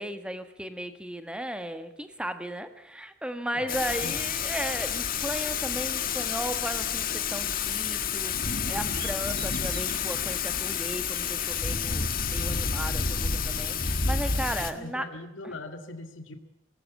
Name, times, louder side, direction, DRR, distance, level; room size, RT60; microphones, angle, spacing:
voice 1, 0.0-15.0, right 1 dB, 5° right, 8 dB, 1.6 m, -35 dB
voice 2, 3.5-4.3 14.7-16.3, left 2 dB, 70° left, 6 dB, 2.3 m, -41 dB
Thunder / Rain, 3.7-14.7, left 6 dB, 45° left, 1.7 m, -29 dB
sound 1, 8.5-10.2, right 9 dB, 55° right, 2.7 m, -48 dB
19.0 x 18.5 x 8.3 m, 0.86 s
head